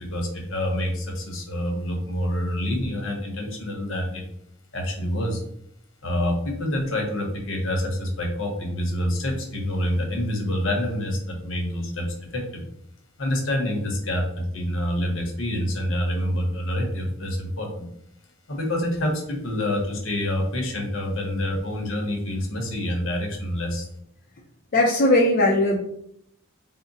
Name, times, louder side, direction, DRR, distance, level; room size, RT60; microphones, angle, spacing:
voice 1, 0.0-4.2 4.7-5.4 6.0-12.1 12.3-12.6 13.2-17.8 18.5-23.9, left 1 dB, 65° left, 1 dB, 0.9 m, -27 dB
voice 2, 24.7-25.8, left 1 dB, 45° left, -3 dB, 0.5 m, -18 dB
3.7 x 2.1 x 3.9 m, 0.73 s
head